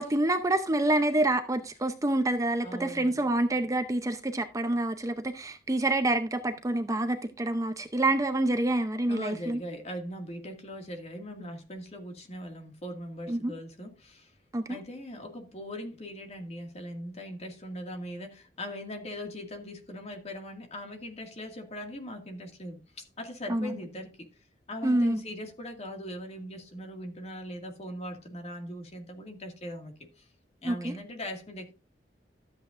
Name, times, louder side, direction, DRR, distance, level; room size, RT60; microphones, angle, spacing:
voice 1, 0.0-9.6 13.3-13.5 14.5-14.8 23.5-23.7 24.8-25.2 30.6-30.9, right 1 dB, 20° right, 0.7 m, -27 dB
voice 2, 2.6-3.3 9.1-14.3 14.7-24.3 24.7-30.3 30.6-31.7, equal, 40° left, 2.2 m, -40 dB
13.0 x 8.2 x 2.6 m
head